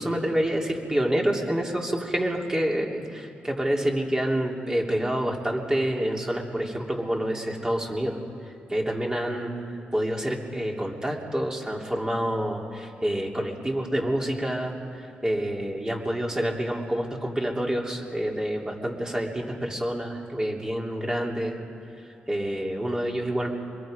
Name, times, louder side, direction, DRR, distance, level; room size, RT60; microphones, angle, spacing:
voice 1, 0.0-8.2 8.4-9.5 9.9-21.6 22.0-23.5, right 1 dB, 20° right, 0 dB, 3.1 m, -28 dB
25.0 x 22.0 x 5.2 m, 2.6 s
cardioid pair, 70°, 4 cm